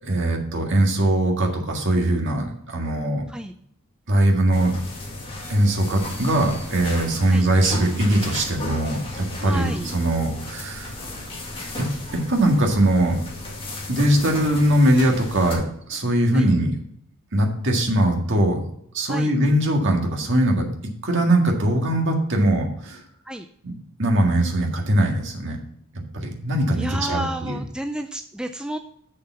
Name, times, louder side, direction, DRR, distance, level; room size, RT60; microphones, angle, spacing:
voice 1, 0.0-3.2 4.1-4.7 5.5-10.9 11.8-13.2 13.9-15.6 15.9-16.7 17.3-18.6 18.9-20.7 21.0-23.0 23.6-23.7 24.0-25.6 26.1-27.6, right 1 dB, 60° right, 2 dB, 1.8 m, -21 dB
sound 1, 4.5-15.5, left 2 dB, 25° left, 2.0 m, -35 dB
voice 2, 9.4-9.9 16.3-16.5 19.1-19.3 23.3-23.5 26.7-28.8, right 1 dB, 5° right, 6 dB, 0.3 m, -31 dB
6.9 x 6.8 x 5.5 m, 0.70 s
head